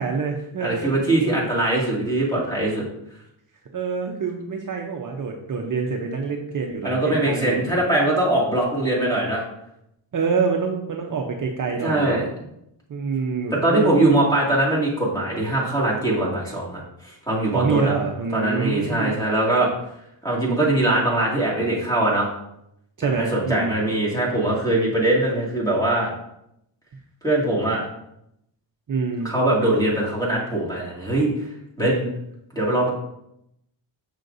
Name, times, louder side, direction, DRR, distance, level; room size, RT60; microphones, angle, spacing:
voice 1, 0.0-1.0 3.7-7.7 10.1-12.2 12.9-14.0 17.5-19.2 23.0-24.1 28.9-29.4, right 5 dB, 40° right, 1 dB, 0.7 m, -26 dB
voice 2, 0.6-2.8 6.8-9.4 11.8-12.3 13.5-17.9 18.3-19.7 20.2-22.3 23.0-26.1 27.2-27.8 29.2-31.3 31.8-32.1 32.6-32.9, right 1 dB, 5° left, -5 dB, 2.2 m, -22 dB
6.6 x 6.3 x 2.6 m, 0.79 s
cardioid pair, 120°, 47 cm